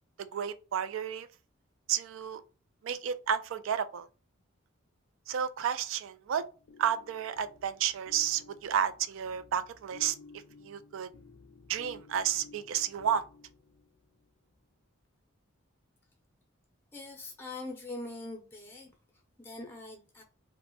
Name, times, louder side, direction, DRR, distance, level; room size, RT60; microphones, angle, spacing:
voice 1, 0.2-1.3 1.9-2.4 2.8-4.1 5.3-6.4 6.8-10.2 10.6-11.1 11.7-13.2, right 8 dB, 70° right, 0.3 m, -31 dB
sound 1, 6.3-14.3, left 4 dB, 65° left, 0.4 m, -55 dB
voice 2, 16.9-18.9 19.4-20.2, left 2 dB, 10° left, 0.5 m, -42 dB
2.9 x 2.1 x 3.0 m
head